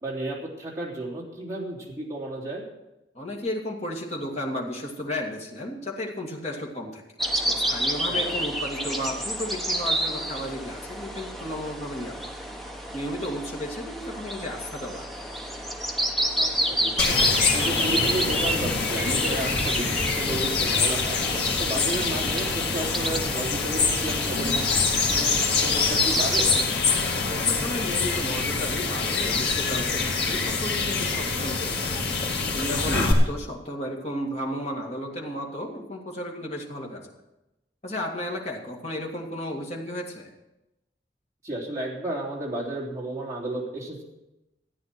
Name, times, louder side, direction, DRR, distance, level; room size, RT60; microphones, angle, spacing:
voice 1, 0.0-2.6 8.1-8.5 16.3-21.2 21.6-26.5 32.7-33.1 41.4-44.0, right 1 dB, 20° right, -4 dB, 3.3 m, -33 dB
voice 2, 3.1-7.0 7.5-12.3 12.9-15.2 27.3-31.7 32.5-37.1 37.8-40.3, left 1 dB, 40° left, 0 dB, 2.2 m, -33 dB
sound 1, 7.2-26.6, right 1 dB, ahead, 1.0 m, -30 dB
sound 2, 17.0-33.1, left 4 dB, 70° left, 2.2 m, -25 dB
14.0 x 9.3 x 6.0 m, 0.96 s
head